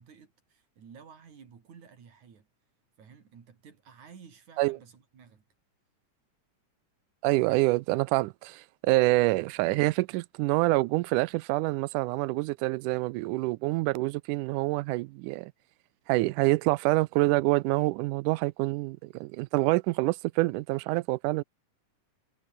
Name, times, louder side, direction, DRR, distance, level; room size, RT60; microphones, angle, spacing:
voice 1, 0.0-2.5 3.0-5.4, right 6 dB, 65° right, 4.4 m, -53 dB
voice 2, 7.2-15.5 16.1-21.4, right 21 dB, 80° right, 2.0 m, -26 dB
omnidirectional pair, 3.7 m